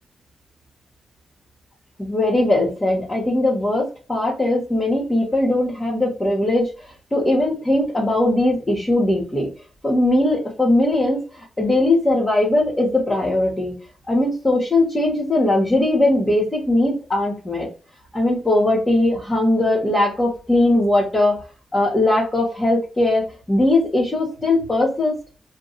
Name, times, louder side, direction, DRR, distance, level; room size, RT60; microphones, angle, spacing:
voice 1, 2.0-6.7 7.1-9.5 9.8-13.7 14.1-17.7 18.1-21.4 21.7-25.1, left 1 dB, 20° left, -5 dB, 1.3 m, -19 dB
2.6 x 2.3 x 4.1 m, 0.34 s
cardioid pair, 70°, 0 cm